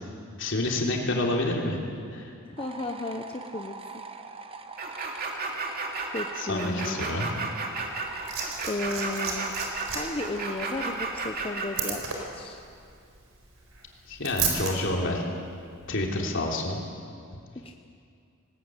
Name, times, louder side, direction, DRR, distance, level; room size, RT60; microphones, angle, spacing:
voice 1, 0.4-1.8 2.1-2.3 6.4-7.3 14.1-15.2 15.9-16.8, left 2 dB, 65° left, 0 dB, 3.4 m, -28 dB
voice 2, 2.4-3.8 6.1-7.1 8.6-9.5 9.9-12.6 17.6-17.7, left 2 dB, 25° left, 4 dB, 0.9 m, -34 dB
sound 1, 2.6-11.3, right 4 dB, 25° right, 1.1 m, -42 dB
sound 2, 4.8-11.9, right 3 dB, 45° right, 2.6 m, -33 dB
Liquid, 7.8-14.7 15.8-15.9, right 5 dB, 75° right, 4.2 m, -34 dB
19.5 x 19.0 x 9.1 m, 2.3 s
head